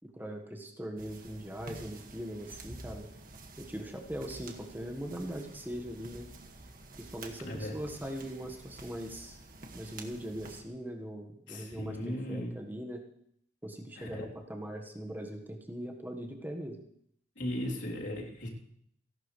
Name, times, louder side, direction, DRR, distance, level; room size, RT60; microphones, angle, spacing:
voice 1, 0.0-3.1 3.6-6.3 7.0-9.4 9.7-13.0 13.6-16.8, equal, 10° right, 2 dB, 1.4 m, -41 dB
sound 1, 1.0-10.6, right 2 dB, 45° right, 1.8 m, -49 dB
voice 2, 7.4-7.7 11.5-12.5 14.0-14.3 17.4-18.5, left 1 dB, 75° left, -3 dB, 3.4 m, -37 dB
30.0 x 12.0 x 3.3 m, 0.71 s
head